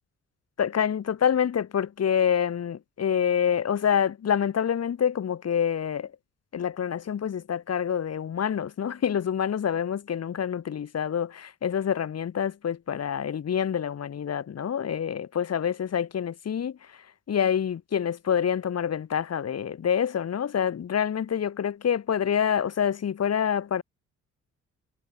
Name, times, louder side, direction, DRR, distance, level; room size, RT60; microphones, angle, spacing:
voice 1, 0.6-6.1 6.5-23.8, left 8 dB, 55° left, 7.6 m, -27 dB
cardioid pair, 90°, 30 cm